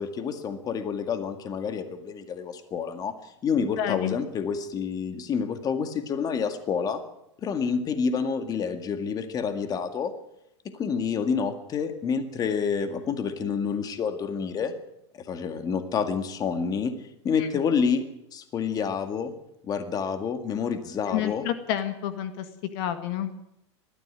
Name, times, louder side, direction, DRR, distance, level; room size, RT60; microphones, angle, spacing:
voice 1, 0.0-7.0 7.4-10.1 10.6-14.7 15.1-16.9 17.2-18.0 18.3-19.3 19.6-21.4, left 6 dB, 25° left, 9 dB, 2.0 m, -28 dB
voice 2, 3.8-4.2 17.4-17.5 21.1-22.5 22.7-23.3, left 10 dB, 55° left, 9 dB, 1.9 m, -29 dB
19.5 x 13.5 x 9.8 m, 0.82 s
supercardioid pair, 135°, 15 cm